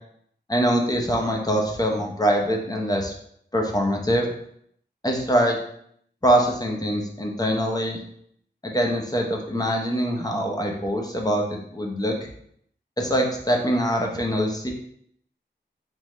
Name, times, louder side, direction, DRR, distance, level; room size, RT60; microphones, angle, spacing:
voice 1, 0.5-3.1 3.5-4.3 5.0-5.6 6.2-8.0 8.6-12.3 13.0-14.7, equal, 20° left, 1 dB, 0.7 m, -23 dB
3.5 x 3.1 x 3.2 m, 0.68 s
wide cardioid pair, 80°, 19 cm